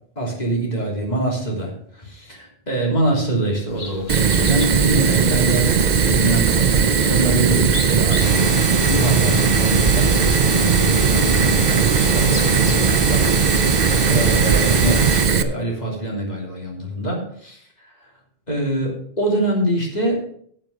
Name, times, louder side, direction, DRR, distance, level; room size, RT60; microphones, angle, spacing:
voice 1, 0.1-8.5 8.8-13.2 13.5-17.9 18.5-20.3, right 1 dB, 40° left, -2 dB, 3.5 m, -25 dB
sound 1, 3.7-13.0, left 3 dB, 65° left, 1.8 m, -38 dB
Fire, 4.1-15.4, right 6 dB, 50° right, 0.8 m, -18 dB
sound 2, 8.2-15.3, left 1 dB, 20° left, 2.0 m, -26 dB
11.5 x 7.8 x 5.0 m, 0.63 s
omnidirectional pair, 1.1 m